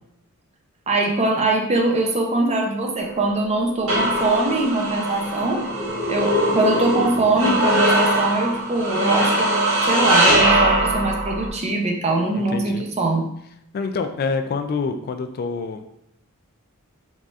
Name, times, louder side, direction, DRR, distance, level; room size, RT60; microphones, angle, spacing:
voice 1, 0.9-5.6 6.1-9.6 9.8-13.3, right 2 dB, 30° right, 1 dB, 0.6 m, -22 dB
sound 1, 3.0-11.5, right 1 dB, 75° right, 1.4 m, -21 dB
voice 2, 12.3-12.8 13.7-15.8, left 4 dB, 45° left, 7 dB, 0.3 m, -26 dB
4.0 x 3.5 x 2.4 m, 0.77 s
head